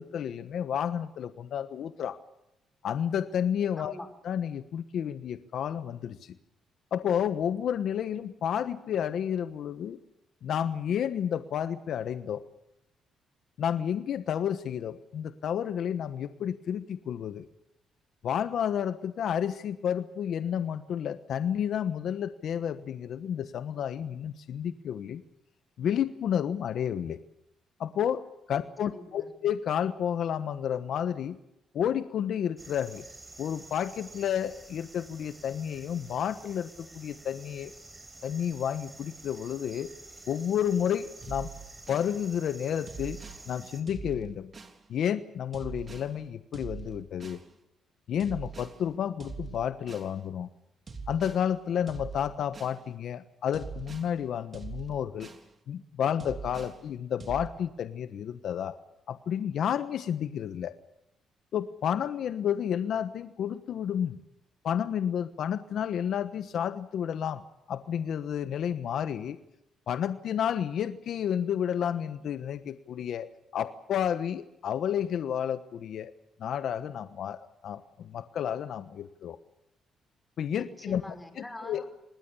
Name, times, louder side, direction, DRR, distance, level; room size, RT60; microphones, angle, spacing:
voice 1, 0.0-2.2 2.8-4.0 4.2-6.3 6.9-10.0 10.4-12.4 13.6-17.5 18.2-25.2 25.8-27.2 27.8-31.4 31.7-33.0 33.4-37.7 38.2-39.9 40.3-41.5 41.9-43.2 43.5-44.5 44.9-47.4 48.1-50.5 51.1-55.3 55.7-58.8 59.1-60.8 61.5-64.2 64.6-69.4 69.9-76.1 76.4-79.4 80.4-81.0 81.6-81.8, left 9 dB, 70° left, 11 dB, 1.2 m, -31 dB
voice 2, 3.8-4.1 28.5-29.3 80.5-82.0, left 1 dB, 10° left, 7 dB, 5.5 m, -44 dB
sound 1, 32.6-43.8, right 2 dB, 20° right, 4.2 m, -50 dB
sound 2, 41.2-42.1 42.9-43.4 43.9-44.8 45.5-46.1 46.5-47.4 48.2-48.8 49.2-50.1 50.9-51.4 51.9-52.8 53.5-54.1 54.5-55.5 56.2-56.8 57.2-57.5, right 5 dB, 35° right, 3.1 m, -42 dB
26.5 x 20.0 x 7.0 m, 0.85 s
cardioid pair, 90°, 0 cm